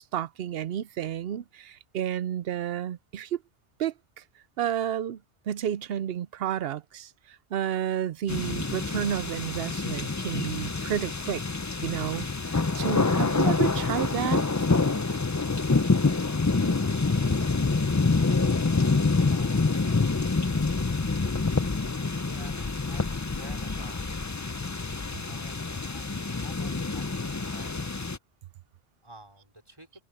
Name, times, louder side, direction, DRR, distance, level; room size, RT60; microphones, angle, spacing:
voice 1, 0.0-3.4 3.8-4.2 4.6-5.2 5.5-11.4 11.8-14.4, right 10 dB, 70° right, 0.8 m, -31 dB
sound 1, 8.3-28.2, left 3 dB, 20° left, 0.5 m, -26 dB
voice 2, 19.3-20.5 21.8-24.5 25.3-27.9 29.0-29.9, right 1 dB, 25° right, 4.7 m, -51 dB
omnidirectional pair, 1.1 m